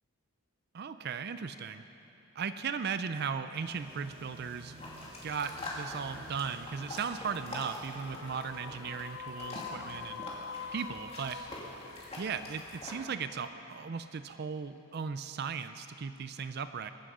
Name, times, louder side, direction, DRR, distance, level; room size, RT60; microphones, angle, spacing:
voice 1, 0.7-1.8 2.4-4.8 5.2-10.3 10.7-11.4 12.2-16.9, right 6 dB, 50° right, 11 dB, 0.4 m, -37 dB
sound 1, 3.5-8.8, right 2 dB, 25° right, 2.8 m, -54 dB
sound 2, 4.8-13.0, left 1 dB, 30° left, 2.5 m, -45 dB
sound 3, 8.0-13.4, left 6 dB, 50° left, 0.7 m, -45 dB
23.5 x 11.5 x 5.0 m, 3.0 s
head